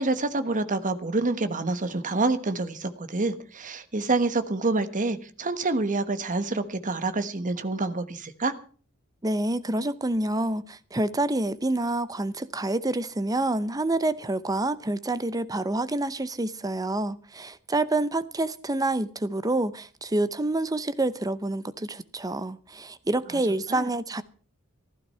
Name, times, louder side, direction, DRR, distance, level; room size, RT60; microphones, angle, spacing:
voice 1, 0.0-8.5 23.7-23.9, right 3 dB, 35° right, 1.3 m, -27 dB
voice 2, 9.2-24.2, right 2 dB, 15° right, 0.7 m, -27 dB
15.0 x 12.5 x 5.6 m
head